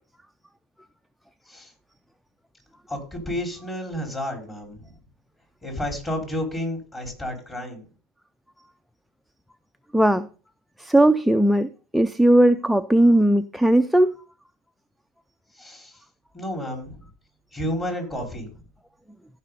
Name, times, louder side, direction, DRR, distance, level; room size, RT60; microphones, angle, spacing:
voice 1, 2.9-4.9 5.6-7.8 15.5-16.0 16.3-17.0 17.5-18.5, left 1 dB, 20° left, 5.1 m, -31 dB
voice 2, 9.9-10.3 10.8-14.2, right 1 dB, ahead, 0.5 m, -18 dB
15.0 x 5.6 x 4.0 m
hypercardioid pair, 80°, 0 cm